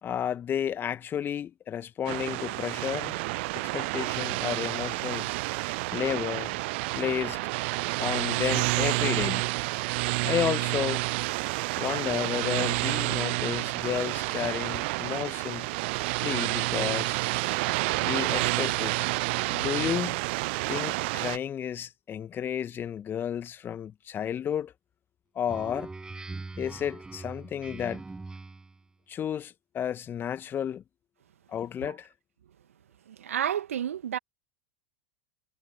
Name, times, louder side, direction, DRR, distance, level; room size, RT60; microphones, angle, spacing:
voice 1, 0.0-3.2 3.5-5.3 5.9-6.6 6.9-7.4 8.0-9.4 10.2-11.0 11.8-15.7 16.2-17.2 18.0-19.1 19.5-20.2 20.7-24.7 25.3-25.9 26.6-28.0 29.1-30.8 31.5-32.1, left 9 dB, 30° left, 1.4 m, -32 dB
sound 1, 2.1-21.4, right 25 dB, 50° right, 0.4 m, -29 dB
Speech synthesizer, 25.5-28.8, right 3 dB, 10° right, 6.3 m, -41 dB
voice 2, 33.1-34.2, right 10 dB, 70° right, 1.8 m, -30 dB
figure-of-eight pair, 90°, 8 cm